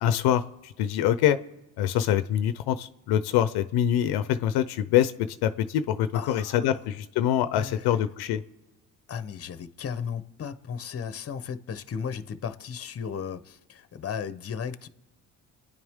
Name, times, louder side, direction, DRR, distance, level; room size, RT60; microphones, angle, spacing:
voice 1, 0.0-1.4 1.8-8.4, left 10 dB, 85° left, 0.7 m, -25 dB
voice 2, 6.1-6.8 7.5-7.9 9.1-14.9, left 7 dB, 40° left, 0.9 m, -35 dB
28.5 x 10.0 x 3.6 m
cardioid pair, 85°, 37 cm